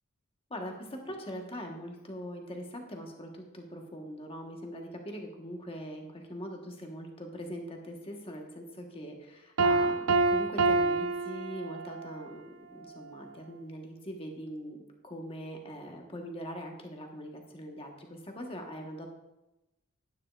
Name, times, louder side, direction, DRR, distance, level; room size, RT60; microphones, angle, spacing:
voice 1, 0.5-19.1, equal, 25° left, 2 dB, 1.2 m, -42 dB
Piano, 9.6-12.1, right 3 dB, 70° right, 0.6 m, -27 dB
9.9 x 9.5 x 2.4 m, 0.95 s
head